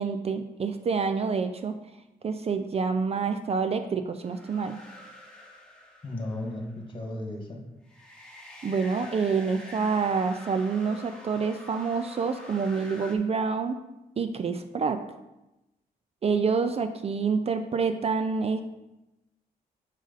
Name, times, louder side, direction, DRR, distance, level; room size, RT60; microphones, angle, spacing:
voice 1, 0.0-1.8 2.2-4.8 8.6-13.8 14.2-15.0 16.2-18.6, right 5 dB, 40° right, 8 dB, 0.4 m, -27 dB
sound 1, 4.2-6.7 7.8-13.1, left 1 dB, 5° left, 1.5 m, -47 dB
voice 2, 6.0-7.6, left 1 dB, 30° left, 1 dB, 1.6 m, -35 dB
6.5 x 5.1 x 4.0 m, 0.95 s
cardioid pair, 95°, 16 cm